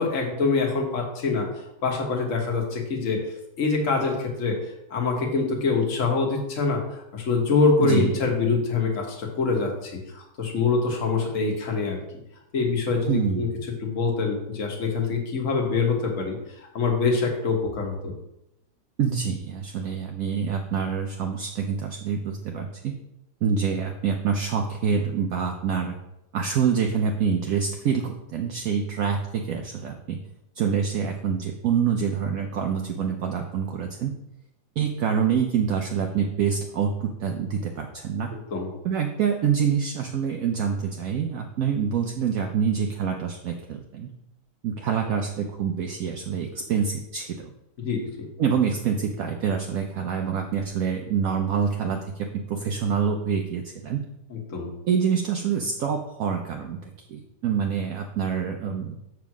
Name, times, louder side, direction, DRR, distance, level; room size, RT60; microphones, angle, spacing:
voice 1, 0.0-1.5 1.8-3.2 3.6-4.5 4.9-6.8 7.1-12.0 12.5-13.5 13.8-16.4 16.7-18.1 38.5-38.7 47.8-48.3 54.3-54.7, left 4 dB, 45° left, 0 dB, 1.7 m, -24 dB
voice 2, 7.8-8.2 13.1-13.6 19.0-22.9 23.4-26.0 26.3-30.2 30.6-34.1 34.8-38.3 38.8-44.1 44.6-47.4 48.4-54.0 54.9-59.0, right 7 dB, 65° right, 2 dB, 0.9 m, -26 dB
7.1 x 4.7 x 6.0 m, 0.87 s
omnidirectional pair, 2.1 m